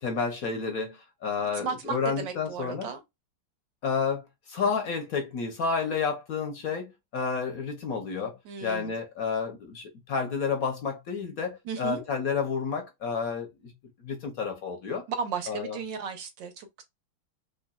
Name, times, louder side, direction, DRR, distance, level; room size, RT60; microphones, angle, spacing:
voice 1, 0.0-2.9 3.8-13.7 14.0-15.1 15.5-15.8, left 5 dB, 60° left, 0.9 m, -30 dB
voice 2, 1.5-3.0 8.4-8.9 11.6-12.0 15.1-16.8, right 6 dB, 65° right, 1.5 m, -34 dB
3.8 x 3.3 x 2.3 m
omnidirectional pair, 2.3 m